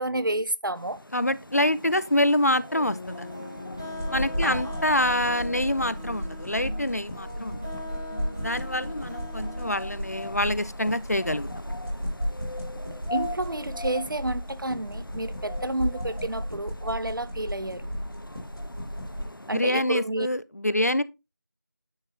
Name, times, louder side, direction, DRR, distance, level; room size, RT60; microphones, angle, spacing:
voice 1, 0.0-1.0 4.4-4.6 13.1-17.9 19.5-20.3, right 1 dB, 80° right, 0.7 m, -30 dB
sound 1, 0.7-19.7, left 1 dB, 90° left, 1.0 m, -43 dB
voice 2, 1.1-3.4 4.1-7.6 8.4-11.5 19.5-21.0, left 1 dB, 50° left, 0.5 m, -26 dB
sound 2, 2.8-10.4, left 1 dB, 10° left, 1.4 m, -40 dB
sound 3, 3.9-19.3, equal, 40° right, 3.1 m, -34 dB
9.7 x 5.7 x 2.8 m
figure-of-eight pair, 175°, 11 cm